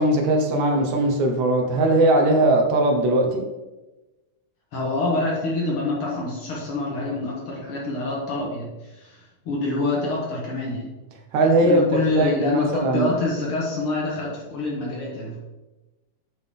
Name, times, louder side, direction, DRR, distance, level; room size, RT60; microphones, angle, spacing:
voice 1, 0.0-3.4 11.3-13.1, right 1 dB, 75° right, 3 dB, 2.2 m, -20 dB
voice 2, 4.7-10.9 11.6-15.4, left 2 dB, 55° left, -3 dB, 1.8 m, -26 dB
7.5 x 5.9 x 3.6 m, 1.1 s
omnidirectional pair, 3.4 m